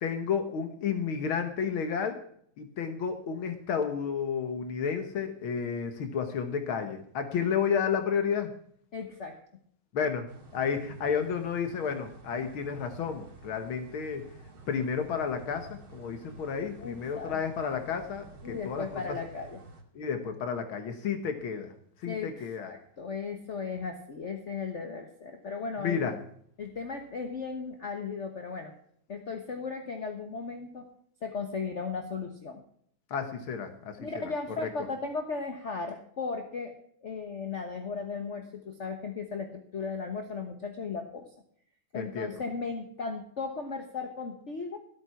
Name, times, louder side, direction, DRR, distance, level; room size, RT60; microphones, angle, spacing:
voice 1, 0.0-2.2 2.6-8.5 9.9-10.3 10.5-14.3 14.7-19.2 20.0-21.7 22.0-22.7 25.8-26.1 33.1-34.0 34.6-34.7 41.9-42.3, left 6 dB, 80° left, 8 dB, 2.1 m, -31 dB
voice 2, 8.9-9.4 16.8-17.4 18.4-19.6 22.1-26.2 26.6-28.7 29.1-30.9 31.2-32.6 34.0-36.7 37.0-41.2 41.9-44.8, left 4 dB, 40° left, 5 dB, 1.4 m, -36 dB
sound 1, 10.3-19.8, right 2 dB, 80° right, 3.3 m, -50 dB
14.0 x 8.8 x 5.7 m, 0.65 s
omnidirectional pair, 2.2 m